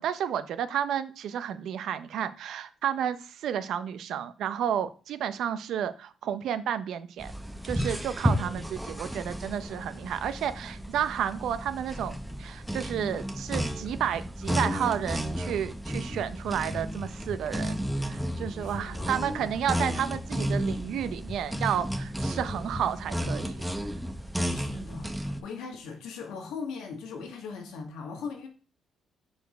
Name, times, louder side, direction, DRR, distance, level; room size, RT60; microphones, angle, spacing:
voice 1, 0.0-7.3 7.6-23.6, right 9 dB, 75° right, 0.6 m, -31 dB
sound 1, 7.2-25.4, equal, 5° right, 0.8 m, -33 dB
voice 2, 8.3-8.6 18.6-19.7 24.5-28.5, left 5 dB, 85° left, 1.4 m, -40 dB
sound 2, 14.7-22.8, left 3 dB, 25° left, 0.3 m, -42 dB
4.7 x 4.4 x 5.0 m
cardioid pair, 90°, 0 cm